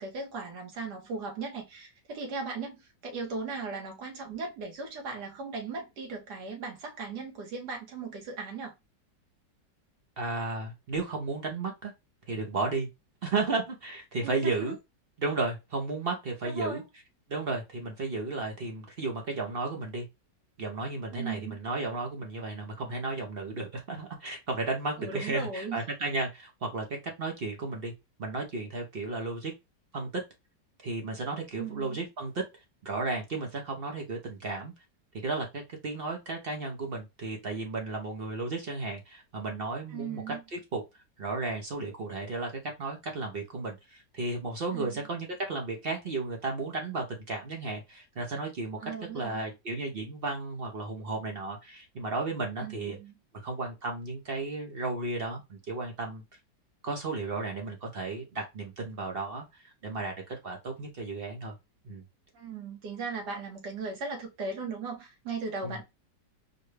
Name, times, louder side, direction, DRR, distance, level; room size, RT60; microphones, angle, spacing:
voice 1, 0.0-8.7 14.2-14.7 16.4-16.9 21.1-21.6 25.0-25.8 31.5-32.0 39.9-40.4 44.7-45.0 48.8-49.5 52.6-53.1 62.3-65.8, right 4 dB, 70° right, 1.7 m, -37 dB
voice 2, 10.2-11.9 12.3-12.9 13.2-14.8 15.2-16.8 17.3-20.0 20.6-26.9 27.2-27.9 28.2-29.5 29.9-30.2 30.8-32.4 32.8-34.7 35.2-40.8 41.2-42.5 42.8-53.0 53.3-56.2 56.8-61.5 61.8-62.0 65.6-65.8, right 3 dB, 50° right, 0.7 m, -34 dB
4.4 x 2.2 x 3.1 m
omnidirectional pair, 1.9 m